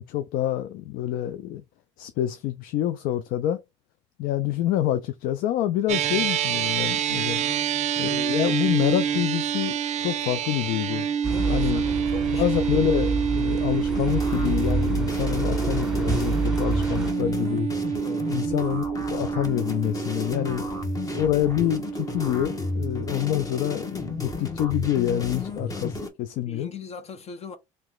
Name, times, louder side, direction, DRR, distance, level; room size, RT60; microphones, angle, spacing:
voice 1, 0.0-1.6 2.0-3.6 4.2-7.4 8.0-11.1 11.5-11.8 12.3-17.7 18.3-20.6 21.1-26.7, left 12 dB, 75° left, 0.4 m, -27 dB
sound 1, 5.9-24.4, right 8 dB, 50° right, 0.5 m, -28 dB
voice 2, 7.3-7.7 11.2-12.9 15.0-15.4 18.0-18.3 25.1-25.4 26.4-27.6, left 6 dB, 45° left, 0.9 m, -41 dB
sound 2, 11.2-17.1, right 3 dB, 5° right, 1.8 m, -28 dB
sound 3, 13.9-26.1, left 3 dB, 25° left, 1.2 m, -33 dB
3.3 x 2.9 x 3.8 m
supercardioid pair, 90°, 15 cm